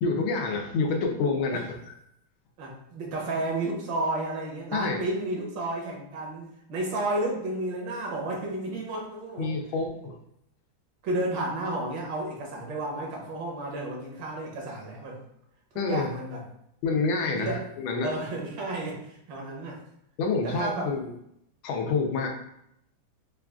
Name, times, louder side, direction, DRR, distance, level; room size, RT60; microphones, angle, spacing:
voice 1, 0.0-1.9 4.7-5.0 9.4-10.2 15.7-16.1 16.8-18.1 20.2-21.1 21.6-22.3, left 4 dB, 85° left, 3 dB, 1.4 m, -28 dB
voice 2, 2.6-9.6 11.0-15.2 15.7-16.4 17.3-17.6 18.0-19.8 20.4-20.9, right 2 dB, 70° right, -1 dB, 1.5 m, -32 dB
5.6 x 2.3 x 2.3 m, 0.77 s
omnidirectional pair, 2.2 m